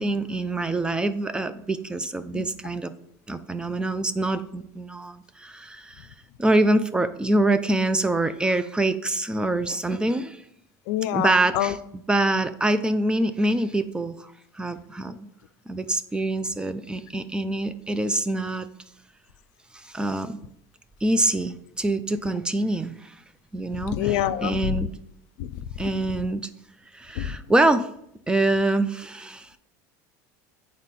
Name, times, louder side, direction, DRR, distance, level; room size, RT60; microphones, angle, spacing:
voice 1, 0.0-2.9 3.3-6.1 6.4-10.4 11.1-15.3 15.7-18.7 19.7-20.4 21.0-23.2 23.5-24.9 25.8-26.4 26.9-27.9 28.3-29.5, right 2 dB, 10° right, 12 dB, 0.4 m, -25 dB
voice 2, 10.9-11.8 23.9-24.8 25.4-26.0 27.2-27.3, left 12 dB, 70° left, 13 dB, 0.5 m, -27 dB
8.0 x 4.2 x 4.2 m, 0.72 s
supercardioid pair, 125°, 9 cm